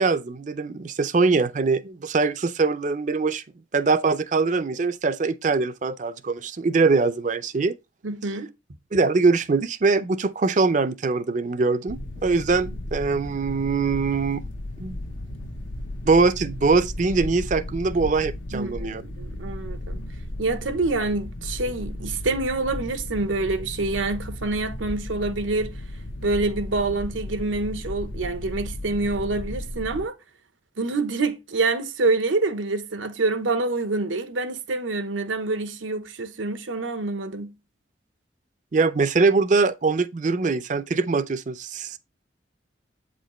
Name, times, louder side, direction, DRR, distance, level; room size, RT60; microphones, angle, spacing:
voice 1, 0.0-3.4 3.7-7.8 8.9-14.4 14.8-15.0 16.0-19.0 38.7-42.0, right 4 dB, 40° right, 0.5 m, -22 dB
voice 2, 8.0-8.5 18.5-20.0 20.4-25.7 26.2-30.1 30.8-37.5, right 3 dB, 90° right, 0.9 m, -26 dB
sound 1, 11.9-30.1, left 1 dB, 85° left, 1.0 m, -35 dB
8.2 x 5.0 x 3.1 m
head